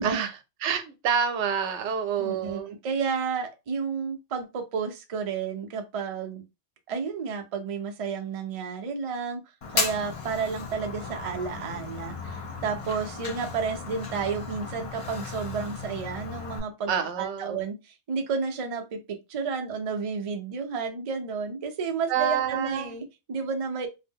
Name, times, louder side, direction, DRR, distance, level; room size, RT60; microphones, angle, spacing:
voice 1, 0.0-2.7 16.9-17.6 22.1-22.9, right 8 dB, 80° right, 0.9 m, -28 dB
voice 2, 2.2-6.4 6.9-9.4 9.7-16.9 17.2-23.9, right 5 dB, 45° right, 0.4 m, -31 dB
Fire, 9.6-16.6, left 4 dB, 45° left, 0.4 m, -35 dB
2.7 x 2.1 x 3.5 m
omnidirectional pair, 1.2 m